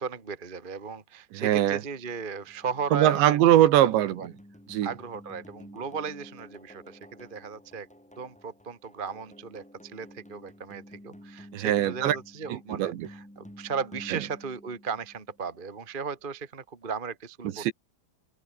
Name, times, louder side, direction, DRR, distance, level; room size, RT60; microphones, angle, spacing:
voice 1, 0.0-3.4 3.8-4.3 4.8-7.9 8.2-17.6, right 5 dB, 35° right, 0.7 m, -36 dB
voice 2, 1.3-1.8 2.9-4.3 4.7-4.9 11.5-12.2 12.5-13.1 14.1-14.2 17.5-17.7, right 13 dB, 70° right, 3.4 m, -22 dB
sound 1, 1.4-15.5, equal, ahead, 3.1 m, -51 dB
omnidirectional pair, 5.8 m